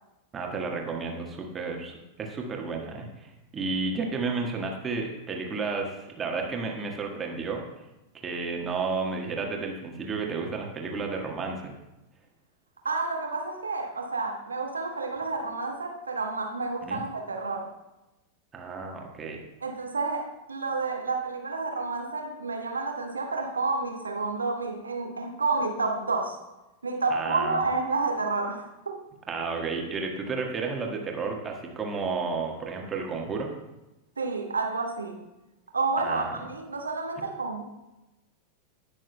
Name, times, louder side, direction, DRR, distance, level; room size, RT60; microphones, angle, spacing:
voice 1, 0.3-7.6 8.1-11.7 16.8-17.0 18.5-19.4 27.1-27.6 29.3-33.5 36.0-36.4, right 4 dB, 20° right, 1 dB, 1.5 m, -32 dB
voice 2, 12.8-17.7 19.6-26.4 26.8-29.0 34.2-35.2 35.7-37.6, right 3 dB, 75° right, 3 dB, 1.1 m, -30 dB
18.5 x 6.4 x 2.3 m, 0.99 s
figure-of-eight pair, 90°, 0 cm